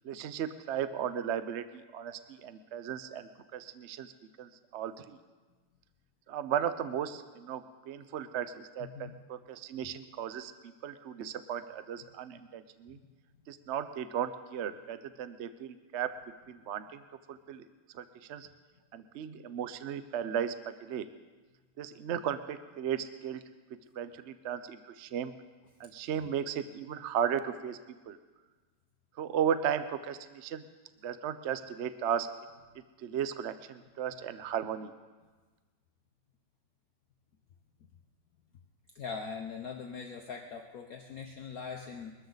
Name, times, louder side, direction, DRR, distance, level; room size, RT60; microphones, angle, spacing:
voice 1, 0.0-4.1 4.4-5.2 6.3-10.5 10.8-13.0 13.5-16.1 16.5-17.0 17.3-17.6 17.9-18.0 18.3-18.5 18.9-21.1 21.8-23.4 24.0-25.3 25.8-27.8 28.1-28.2 29.2-30.6 31.0-32.3 33.0-34.9, right 9 dB, 70° right, 11 dB, 0.6 m, -35 dB
voice 2, 8.8-9.2 26.1-26.3 38.9-42.1, left 5 dB, 55° left, 2 dB, 1.2 m, -41 dB
22.0 x 13.5 x 4.0 m, 1.3 s
omnidirectional pair, 2.1 m